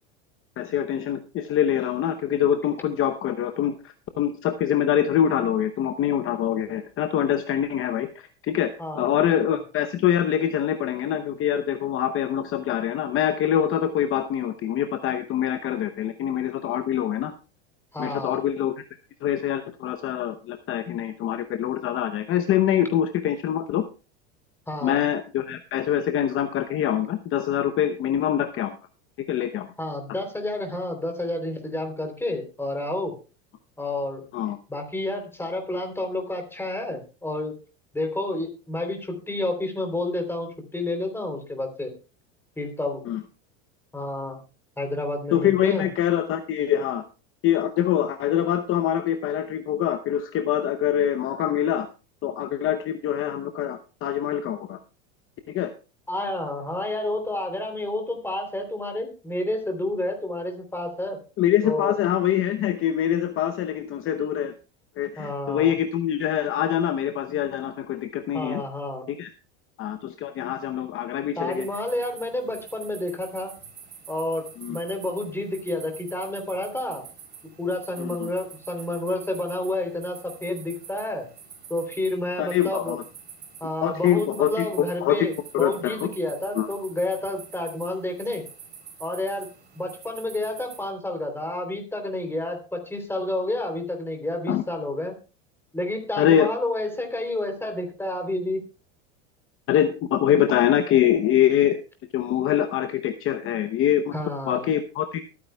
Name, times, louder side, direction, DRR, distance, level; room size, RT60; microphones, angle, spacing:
voice 1, 0.6-8.7 8.9-17.3 18.0-18.7 19.2-23.8 24.8-28.8 29.3-29.7 34.3-34.6 43.1-43.2 45.3-47.0 47.4-51.9 52.2-54.8 55.5-55.7 61.4-64.5 65.0-68.6 69.1-69.3 69.8-71.7 74.6-74.8 78.0-78.3 82.4-83.0 83.8-84.7 85.0-85.3 85.5-86.0 86.5-86.7 94.5-94.6 96.2-96.5 99.7-101.8 102.1-104.1 104.5-105.2, left 10 dB, 40° left, 8 dB, 0.8 m, -24 dB
voice 2, 8.8-9.3 17.9-18.4 24.7-25.0 29.8-33.1 33.8-34.2 34.7-37.5 37.9-41.9 42.6-43.0 43.9-44.4 44.8-45.9 56.1-61.2 61.6-62.0 65.2-65.7 68.3-69.1 71.4-73.5 74.1-77.0 77.6-81.3 81.7-83.0 83.6-88.4 89.0-89.5 89.7-95.1 95.7-98.6 104.1-104.7, left 1 dB, 5° left, 4 dB, 3.3 m, -30 dB
sound 1, 71.5-90.9, right 7 dB, 30° right, 3.5 m, -46 dB
23.0 x 9.5 x 2.3 m, 0.33 s
supercardioid pair, 125°, 34 cm